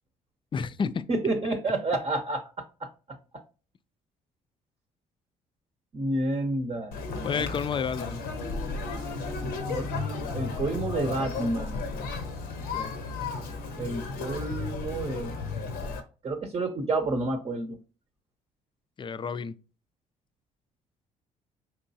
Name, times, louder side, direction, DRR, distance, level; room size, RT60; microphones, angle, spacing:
voice 1, 0.5-1.1 7.2-8.2 12.7-12.9 19.0-19.6, left 6 dB, 30° left, 0.4 m, -31 dB
voice 2, 1.1-2.9 5.9-7.0 9.4-11.8 13.8-15.3 16.2-17.8, right 2 dB, 35° right, 0.8 m, -30 dB
Conversation, 6.9-16.0, left 4 dB, 75° left, 0.8 m, -34 dB
4.5 x 3.0 x 2.7 m
hypercardioid pair, 60°, 16 cm